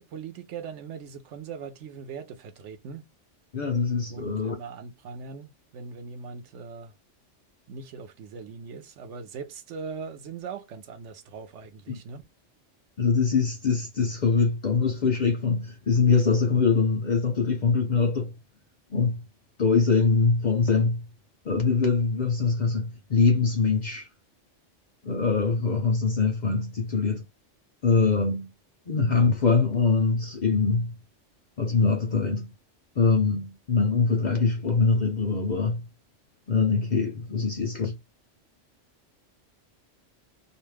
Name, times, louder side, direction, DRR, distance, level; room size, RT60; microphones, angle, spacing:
voice 1, 0.0-3.1 4.1-6.9 7.7-12.3, right 5 dB, 75° right, 0.9 m, -40 dB
voice 2, 3.5-4.5 11.9-12.0 13.0-18.3 18.9-19.2 19.6-21.1 21.4-24.1 25.0-27.2 27.8-28.5 28.9-31.0 31.6-32.5 33.0-35.8 36.5-38.0, left 4 dB, 55° left, 0.5 m, -23 dB
2.5 x 2.1 x 3.2 m
omnidirectional pair, 1.2 m